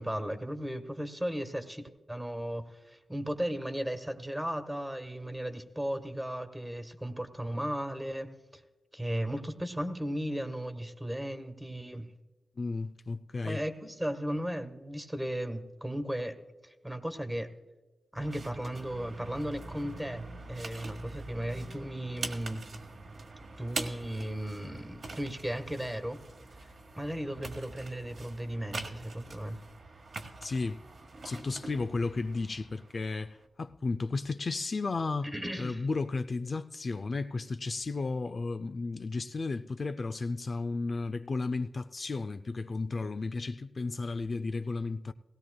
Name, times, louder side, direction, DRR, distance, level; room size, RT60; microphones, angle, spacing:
voice 1, 0.0-8.3 8.9-12.1 13.4-16.4 16.6-17.5 18.1-22.6 23.6-26.2 26.9-29.6 35.2-35.8, equal, 10° right, 1.3 m, -36 dB
voice 2, 12.6-13.6 30.4-30.8 31.2-35.3 35.6-45.1, left 3 dB, 55° left, 0.4 m, -33 dB
sound 1, 18.1-33.4, right 3 dB, 65° right, 1.5 m, -44 dB
17.0 x 17.0 x 2.3 m
cardioid pair, 55°, 0 cm